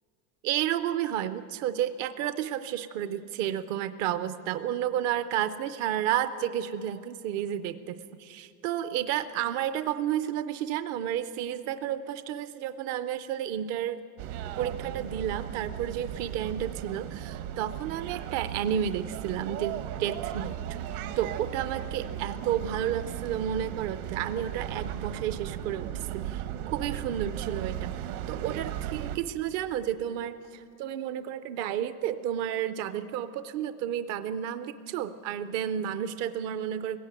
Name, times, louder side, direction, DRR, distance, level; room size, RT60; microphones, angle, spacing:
voice 1, 0.4-14.0 14.6-20.8 21.2-28.0 28.3-37.0, right 10 dB, 40° right, 11 dB, 0.5 m, -31 dB
sound 1, 14.2-29.2, right 11 dB, 65° right, 1.2 m, -36 dB
20.0 x 16.5 x 8.9 m, 2.6 s
supercardioid pair, 160°, 45 cm